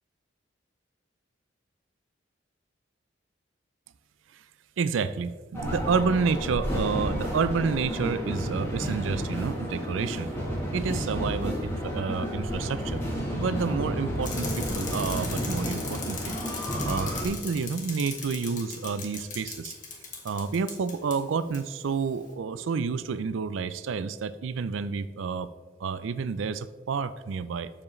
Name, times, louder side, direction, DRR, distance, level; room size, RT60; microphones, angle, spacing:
voice 1, 4.8-10.3 10.7-13.0 13.3-16.4 16.9-19.7 20.2-25.5 25.8-27.7, right 5 dB, 75° right, 14 dB, 0.4 m, -29 dB
sound 1, 5.5-17.3, equal, 15° left, 1.3 m, -31 dB
Bicycle, 14.2-21.2 21.5-21.6, left 5 dB, 40° left, 1.3 m, -39 dB
7.2 x 7.2 x 3.1 m, 1.4 s
head